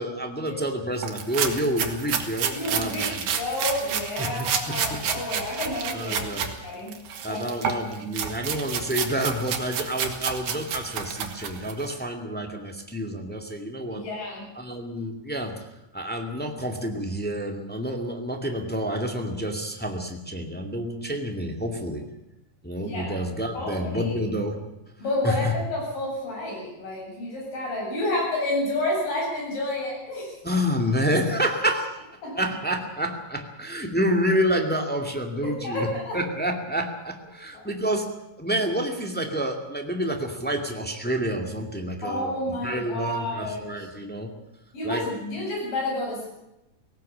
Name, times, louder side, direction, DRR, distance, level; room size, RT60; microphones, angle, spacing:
voice 1, 0.0-3.3 4.2-5.0 5.5-5.6 5.9-6.5 7.2-14.1 14.5-15.7 15.9-22.0 22.6-24.6 25.2-25.6 30.4-32.0 32.3-35.9 36.1-44.3 44.8-45.1, equal, 5° left, 3 dB, 1.5 m, -28 dB
sound 1, 1.0-6.5 6.9-11.9, right 7 dB, 85° right, 3.6 m, -30 dB
voice 2, 2.5-7.0 7.3-7.8 13.9-14.5 22.8-23.1 23.5-24.1 25.0-30.3 32.2-32.4 35.6-36.2 42.0-43.9 44.7-46.3, left 1 dB, 80° left, -2 dB, 9.8 m, -30 dB
18.0 x 17.5 x 8.6 m, 0.91 s
omnidirectional pair, 3.8 m